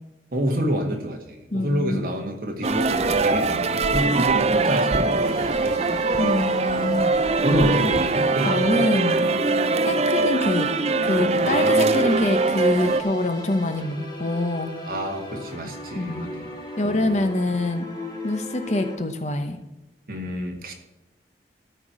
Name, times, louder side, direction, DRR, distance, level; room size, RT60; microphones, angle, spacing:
voice 1, 0.3-5.9 6.7-7.0 7.4-8.8 11.4-12.0 14.9-16.5 16.8-17.1 20.1-20.7, equal, 50° right, 2 dB, 1.8 m, -28 dB
voice 2, 1.5-2.3 6.2-7.1 8.4-9.3 9.8-10.7 11.0-14.7 15.9-16.3 16.8-17.9 18.2-19.6, left 1 dB, 40° left, 7 dB, 0.9 m, -25 dB
sound 1, 2.6-13.0, right 3 dB, 35° right, 0.5 m, -22 dB
sound 2, 5.2-18.9, equal, 25° left, 2.3 m, -37 dB
13.5 x 4.7 x 8.1 m, 0.97 s
head